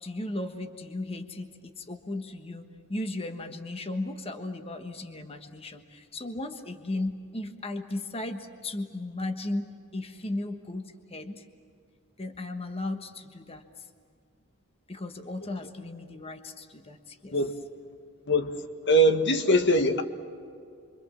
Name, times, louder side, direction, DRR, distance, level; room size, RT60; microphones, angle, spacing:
voice 1, 0.0-11.4 12.2-13.7 14.9-17.3, left 2 dB, 25° left, 1.4 m, -36 dB
voice 2, 18.3-18.6 18.9-20.0, right 1 dB, 55° left, 1.6 m, -22 dB
28.0 x 24.5 x 7.5 m
head